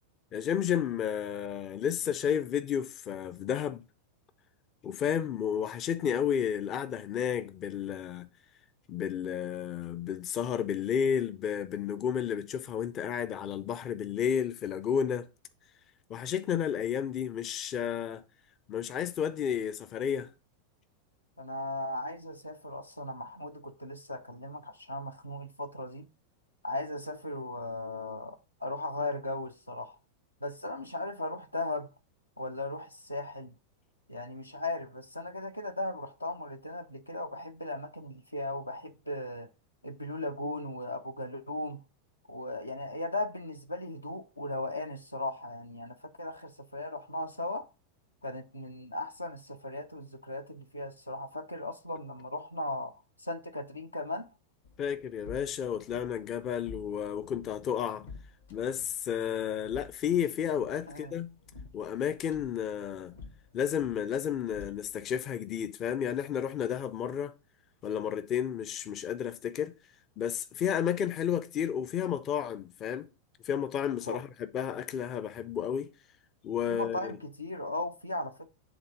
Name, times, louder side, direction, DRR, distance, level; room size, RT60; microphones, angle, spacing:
voice 1, 0.3-3.8 4.8-8.3 8.9-15.3 16.1-18.2 18.7-20.3 54.8-58.1 58.5-61.3 61.7-63.1 63.5-67.3 67.8-69.7 70.2-73.1 73.4-75.9 76.4-77.1, left 8 dB, 30° left, 0.5 m, -32 dB
voice 2, 21.4-26.1 26.6-30.0 30.4-31.9 32.4-33.5 34.1-39.5 39.8-41.8 42.3-47.7 48.2-52.9 53.2-54.3 60.9-61.1 74.1-74.2 76.7-78.5, left 2 dB, 85° left, 0.8 m, -37 dB
sound 1, 54.6-65.2, left 4 dB, 70° left, 1.4 m, -51 dB
7.9 x 3.7 x 5.2 m
figure-of-eight pair, 90°, 0 cm